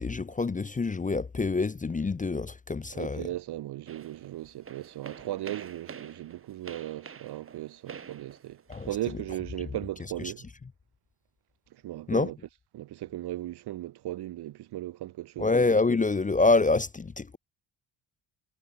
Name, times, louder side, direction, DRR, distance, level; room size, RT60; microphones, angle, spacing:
voice 1, 0.0-3.3 8.7-8.9 12.1-12.3 15.4-17.4, left 3 dB, 15° left, 0.5 m, -26 dB
voice 2, 2.9-10.5 11.8-12.3 12.7-15.5, right 14 dB, 55° right, 0.5 m, -37 dB
sound 1, 3.9-9.1, right 6 dB, 25° right, 0.8 m, -47 dB
cardioid pair, 100°, 50 cm